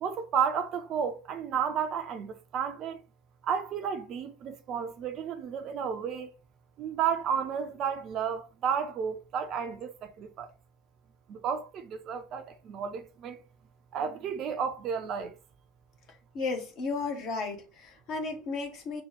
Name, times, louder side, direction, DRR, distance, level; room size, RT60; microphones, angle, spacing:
voice 1, 0.0-3.0 3.4-6.3 6.8-10.5 11.3-13.4 13.9-15.3, right 7 dB, 40° right, 0.4 m, -32 dB
voice 2, 16.3-19.0, left 4 dB, 50° left, 1.0 m, -34 dB
4.2 x 2.2 x 3.2 m
figure-of-eight pair, 70°, 0 cm